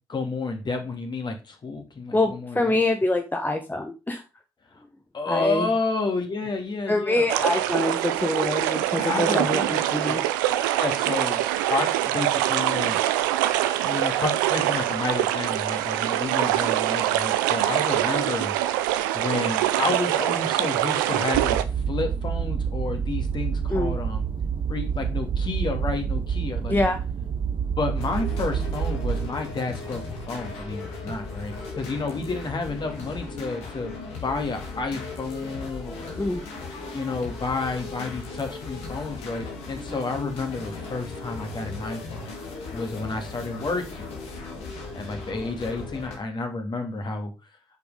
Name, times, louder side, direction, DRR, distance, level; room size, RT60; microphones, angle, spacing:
voice 1, 0.1-2.6 5.1-7.4 8.9-10.2 10.8-11.4 11.7-13.0 13.8-18.6 19.1-24.3 24.7-26.8 27.8-33.9 34.2-36.2 36.9-42.3 42.7-44.1 44.9-47.3, left 3 dB, 45° left, 4 dB, 2.5 m, -30 dB
voice 2, 2.1-4.2 5.3-5.7 6.9-10.2 23.7-24.0 26.7-27.0 36.2-36.4, left 2 dB, 20° left, 5 dB, 1.3 m, -25 dB
sound 1, 7.3-21.6, right 13 dB, 90° right, 0.5 m, -24 dB
sound 2, 21.3-29.3, right 6 dB, 55° right, 1.2 m, -28 dB
sound 3, 28.0-46.2, left 3 dB, 80° left, 2.0 m, -37 dB
6.7 x 5.3 x 5.0 m, 0.28 s
hypercardioid pair, 45°, 10 cm